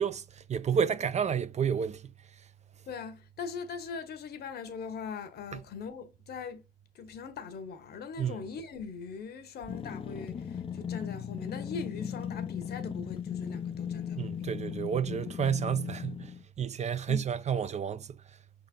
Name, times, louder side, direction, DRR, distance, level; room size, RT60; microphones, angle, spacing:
voice 1, 0.0-2.1 8.2-8.4 14.2-18.1, right 7 dB, 40° right, 0.4 m, -30 dB
voice 2, 2.9-6.6 6.9-14.5 17.1-17.3, left 5 dB, 65° left, 1.0 m, -41 dB
sound 1, 9.7-16.4, left 8 dB, 30° left, 0.4 m, -37 dB
5.4 x 4.1 x 2.3 m
supercardioid pair, 70°, 18 cm